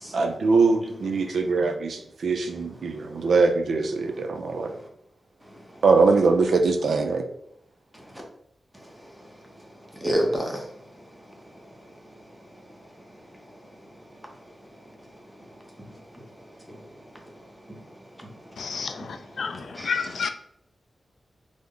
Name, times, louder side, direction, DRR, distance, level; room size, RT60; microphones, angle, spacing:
voice 1, 0.1-4.7 5.8-7.2, right 4 dB, 85° right, 5 dB, 0.4 m, -22 dB
voice 2, 9.9-10.7 15.8-15.9 16.7-16.8 17.7-17.8 18.2-18.3 19.0-20.1, equal, 5° right, 0 dB, 0.7 m, -31 dB
voice 3, 18.6-18.9 19.4-19.5 19.8-20.3, left 5 dB, 85° left, 7 dB, 0.3 m, -28 dB
3.3 x 2.0 x 3.6 m, 0.71 s
wide cardioid pair, 145°, 0 cm